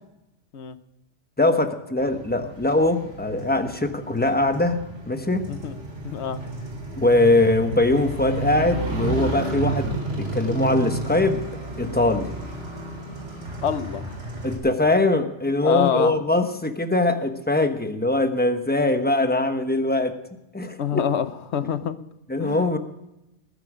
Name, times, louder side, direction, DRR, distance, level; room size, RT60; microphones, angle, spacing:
voice 1, 1.4-4.8 5.1-5.5 7.0-11.4 11.8-12.3 14.4-20.2 20.5-21.0 22.3-22.8, left 2 dB, 10° left, 7 dB, 1.0 m, -22 dB
Motorcycle, 2.0-14.6, right 3 dB, 80° right, 4.2 m, -32 dB
voice 2, 6.0-6.4 13.6-14.1 15.6-16.2 20.8-22.0 22.4-22.7, left 8 dB, 70° left, 12 dB, 1.1 m, -26 dB
20.0 x 10.0 x 5.0 m, 0.89 s
omnidirectional pair, 1.2 m